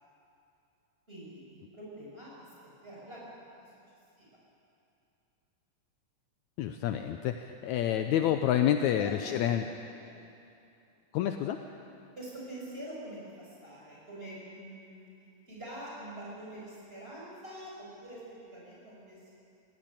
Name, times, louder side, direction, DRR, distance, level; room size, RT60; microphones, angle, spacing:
voice 1, 1.1-2.5 2.8-3.3 3.6-3.7 4.2-4.3 8.7-9.3 10.0-10.2 12.2-15.1 15.5-19.3, right 1 dB, 15° right, -5 dB, 6.8 m, -45 dB
voice 2, 6.6-9.7 11.1-11.6, left 11 dB, 75° left, 7 dB, 1.8 m, -28 dB
20.5 x 16.0 x 9.0 m, 2.7 s
omnidirectional pair, 3.7 m